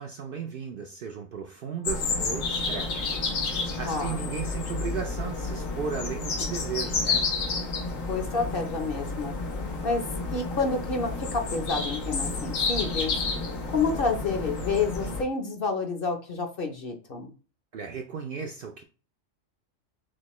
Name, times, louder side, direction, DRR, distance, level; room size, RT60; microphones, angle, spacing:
voice 1, 0.0-3.1 3.5-7.3 17.7-18.8, right 6 dB, 60° right, 3 dB, 0.6 m, -35 dB
sound 1, 1.8-15.2, left 3 dB, 85° left, 1.3 m, -30 dB
voice 2, 3.8-4.3 8.0-9.3 9.8-10.0 10.3-13.1 13.7-17.3, left 4 dB, 50° left, 4 dB, 0.8 m, -29 dB
6.3 x 2.2 x 3.1 m, 0.36 s
omnidirectional pair, 1.3 m